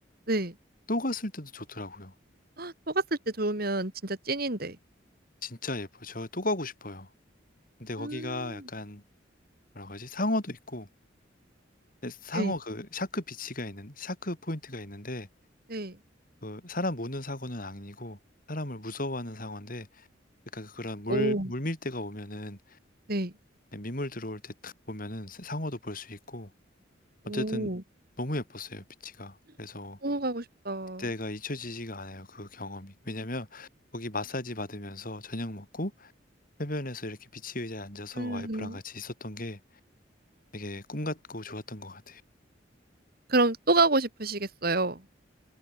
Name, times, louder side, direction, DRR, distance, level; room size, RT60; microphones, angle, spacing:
voice 1, 0.9-2.1 5.4-7.1 7.8-9.0 9.7-10.9 12.0-15.3 16.4-18.2 18.5-20.1 20.5-22.8 23.7-26.5 27.3-27.7 28.2-30.0 31.0-36.1 36.6-39.6 40.5-42.2, left 1 dB, 45° left, 5.7 m, -35 dB
voice 2, 2.6-3.0 3.4-4.8 8.0-8.6 12.3-12.5 15.7-16.0 21.1-21.5 23.1-23.3 27.3-27.8 30.0-31.0 38.1-38.8 43.3-45.0, right 2 dB, 50° right, 2.9 m, -28 dB
head